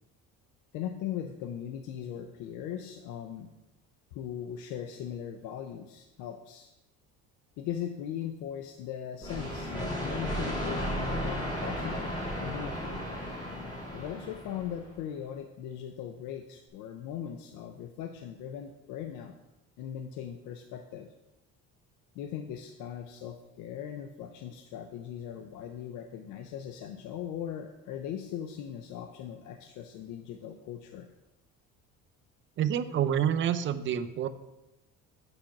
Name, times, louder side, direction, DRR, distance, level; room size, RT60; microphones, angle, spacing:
voice 1, 0.7-3.5 4.1-6.7 7.6-12.1 12.4-13.0 13.9-19.3 19.8-21.1 22.1-31.1, left 9 dB, 80° left, 6 dB, 0.6 m, -39 dB
sound 1, 9.2-14.9, equal, 15° left, 2.6 m, -34 dB
voice 2, 32.6-34.3, right 9 dB, 40° right, 10 dB, 0.5 m, -28 dB
8.0 x 4.4 x 5.8 m, 0.96 s
cardioid pair, 125°, 30 cm